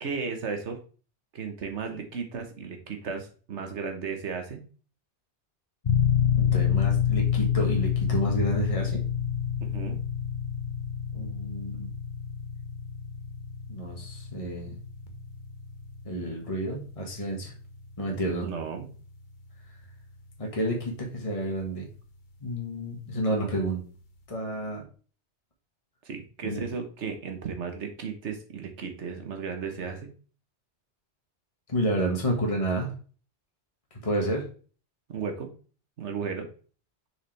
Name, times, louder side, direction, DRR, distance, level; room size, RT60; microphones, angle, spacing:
voice 1, 0.0-0.8 1.3-4.6 9.6-10.0 18.4-18.9 26.0-30.1 35.1-35.5 36.0-36.5, right 5 dB, 85° right, 5 dB, 1.5 m, -35 dB
sound 1, 5.8-20.3, left 8 dB, 45° left, 1.0 m, -29 dB
voice 2, 6.4-9.0 11.1-11.9 13.7-14.8 16.0-17.5 18.0-18.5 20.4-21.9 22.4-23.8 24.3-24.8 26.4-26.7 31.7-32.9 34.0-34.4, right 1 dB, 30° left, 0 dB, 1.6 m, -30 dB
6.8 x 4.9 x 3.4 m, 0.39 s
omnidirectional pair, 1.2 m